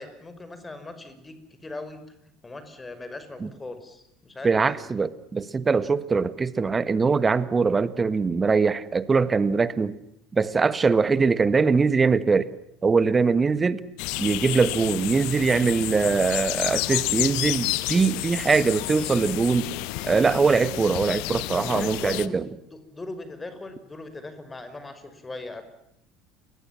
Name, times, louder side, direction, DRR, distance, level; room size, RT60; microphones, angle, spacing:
voice 1, 0.0-2.0 2.4-4.8 21.6-22.4 22.7-25.6, left 2 dB, 20° left, 10 dB, 5.7 m, -39 dB
voice 2, 4.4-10.0 10.3-12.5 12.8-13.8 14.2-19.7 20.0-22.5, right 4 dB, 25° right, 16 dB, 1.6 m, -22 dB
sound 1, 14.0-22.3, left 21 dB, 60° left, 1.2 m, -30 dB
30.0 x 23.0 x 7.4 m, 0.74 s
figure-of-eight pair, 65°, 0 cm